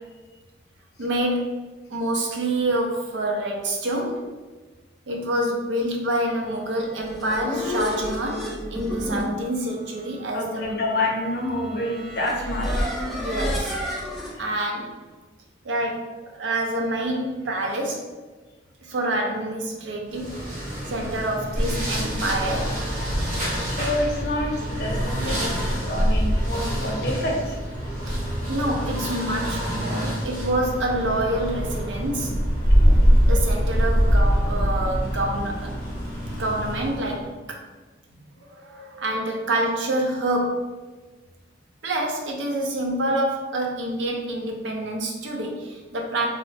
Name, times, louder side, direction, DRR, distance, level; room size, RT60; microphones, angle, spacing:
voice 1, 1.0-1.5 1.9-4.2 5.1-10.8 13.1-13.7 14.4-14.9 15.6-18.1 18.8-20.4 20.9-22.8 28.5-32.4 33.3-35.8 36.4-37.6 38.5-40.6 41.8-46.3, right 1 dB, 80° right, 1 dB, 0.5 m, -27 dB
sound 1, 6.8-14.3, left 1 dB, ahead, 0.3 m, -31 dB
voice 2, 10.3-13.0 14.2-14.5 23.7-24.5 24.8-27.6 32.8-33.2, left 1 dB, 55° left, -1 dB, 0.5 m, -28 dB
sound 2, 20.1-37.3, equal, 45° right, 0.8 m, -24 dB
3.0 x 2.0 x 2.7 m, 1.3 s
head